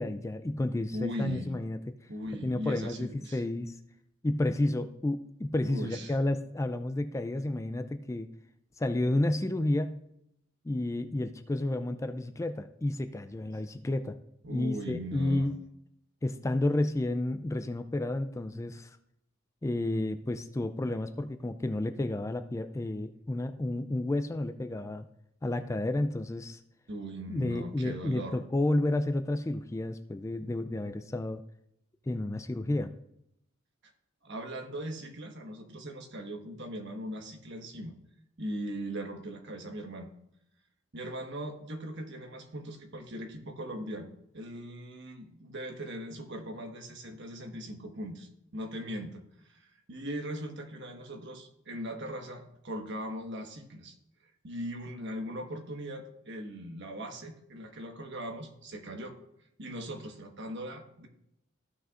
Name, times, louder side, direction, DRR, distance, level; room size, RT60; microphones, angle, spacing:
voice 1, 0.0-1.8 2.4-3.8 4.2-8.3 8.8-10.0 10.6-14.1 14.5-15.5 16.2-19.0 19.6-25.0 25.4-26.6 27.3-31.4 32.1-32.9, left 1 dB, 15° left, 9 dB, 0.3 m, -31 dB
voice 2, 0.9-1.5 2.1-3.4 5.6-6.2 14.4-15.5 26.9-28.4 33.8-33.9 34.2-37.9 38.4-40.1 40.9-53.9 54.4-59.2 59.6-61.1, equal, 60° right, 4 dB, 1.3 m, -39 dB
15.0 x 6.1 x 2.5 m, 0.76 s
head